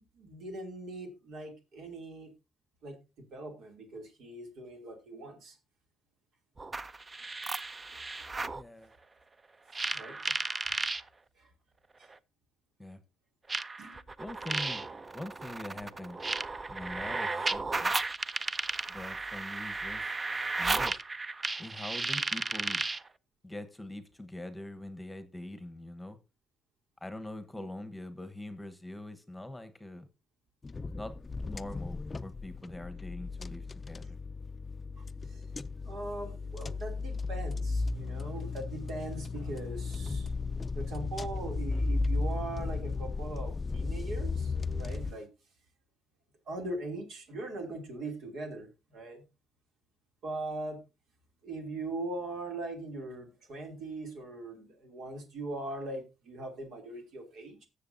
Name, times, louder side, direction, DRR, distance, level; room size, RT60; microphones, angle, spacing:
voice 1, 0.1-2.3 2.8-3.0 3.3-5.6 7.9-8.6 9.8-10.8 11.4-11.5 13.8-14.0 27.5-27.6 35.0-35.1 35.3-35.4 35.8-40.3 40.7-45.3 46.5-49.2 50.2-50.8 51.4-57.7, right 2 dB, 75° right, 2.7 m, -41 dB
sound 1, 6.6-8.6 9.7-11.0 12.1-12.2 13.5-23.1, right 3 dB, 25° right, 0.5 m, -34 dB
voice 2, 8.5-8.9 12.8-13.0 14.2-14.9 15.1-16.2 16.7-18.1 18.9-21.0 21.6-22.9 23.4-26.2 27.0-30.1 31.0-31.2 31.5-34.2, left 1 dB, 10° left, 1.1 m, -43 dB
sound 2, 30.6-45.1, left 3 dB, 30° left, 0.4 m, -35 dB
18.5 x 6.8 x 2.7 m
cardioid pair, 90°, 0 cm